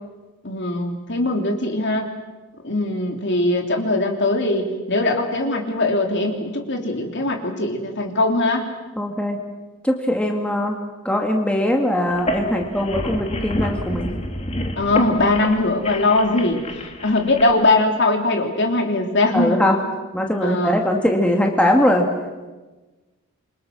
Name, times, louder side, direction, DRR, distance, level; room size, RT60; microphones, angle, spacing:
voice 1, 0.4-2.1 2.6-8.7 14.7-19.6 20.4-20.8, left 2 dB, 50° left, 3 dB, 3.1 m, -21 dB
voice 2, 9.0-9.4 9.8-10.8 11.0-14.1 19.3-19.8 20.1-22.1, left 1 dB, 5° left, 1 dB, 2.0 m, -20 dB
sound 1, 12.1-17.5, left 1 dB, 30° left, 1.9 m, -29 dB
27.5 x 24.5 x 6.3 m, 1.2 s
head